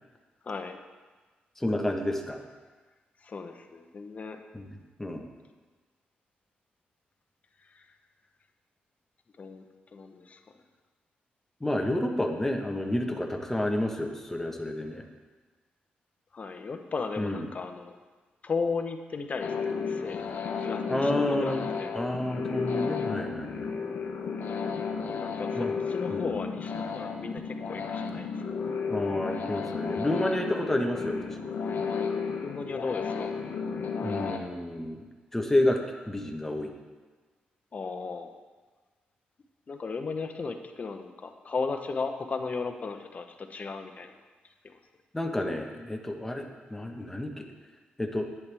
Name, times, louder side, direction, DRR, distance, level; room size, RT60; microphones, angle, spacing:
voice 1, 0.4-0.8 3.2-4.4 7.7-7.8 9.4-9.6 9.9-10.4 16.3-18.0 18.4-19.5 19.8-20.2 20.6-21.9 25.1-28.4 32.4-33.3 37.7-38.4 39.7-44.1 44.6-44.7, left 4 dB, 45° left, 6 dB, 0.9 m, -35 dB
voice 2, 1.6-2.4 4.5-4.7 5.0-5.3 11.6-15.0 17.2-17.5 20.8-21.6 21.9-23.7 25.6-25.8 26.1-26.3 28.9-31.4 34.0-35.0 35.3-35.8 36.1-36.7 45.1-47.5 48.0-48.3, left 1 dB, 10° left, 3 dB, 1.2 m, -30 dB
sound 1, 19.4-34.4, left 5 dB, 70° left, 1.0 m, -33 dB
10.5 x 9.6 x 3.5 m, 1.4 s
cardioid pair, 80°, 3 cm